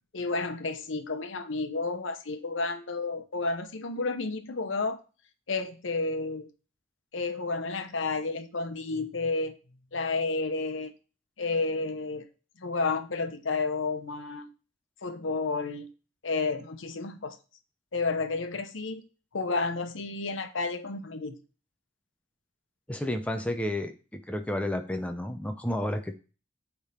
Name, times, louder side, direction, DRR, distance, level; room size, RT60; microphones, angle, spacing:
voice 1, 0.1-5.0 5.5-6.5 7.1-9.5 9.9-10.9 11.4-12.3 12.6-14.5 15.0-15.9 16.2-17.4 17.9-19.0 19.3-21.4, left 3 dB, 85° left, 8 dB, 0.9 m, -31 dB
voice 2, 22.9-26.2, left 1 dB, 5° left, 6 dB, 0.6 m, -31 dB
8.5 x 3.6 x 4.2 m, 0.34 s
head